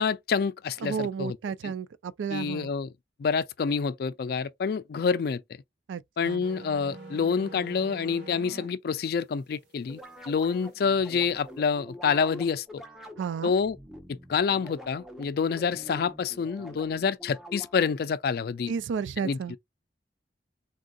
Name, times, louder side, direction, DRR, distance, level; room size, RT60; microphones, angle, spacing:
voice 1, 0.0-1.4 1.6-1.7 2.3-2.9 3.2-5.4 6.2-10.0 10.3-12.8 13.4-13.8 14.1-18.7 19.2-19.6, left 6 dB, 55° left, 0.3 m, -27 dB
voice 2, 0.8-2.7 5.9-6.4 13.2-13.5 18.7-19.6, right 6 dB, 85° right, 0.3 m, -32 dB
sound 1, 6.4-8.7, right 2 dB, 65° right, 1.6 m, -43 dB
sound 2, 9.9-18.0, equal, ahead, 0.6 m, -46 dB
3.5 x 2.5 x 2.3 m
head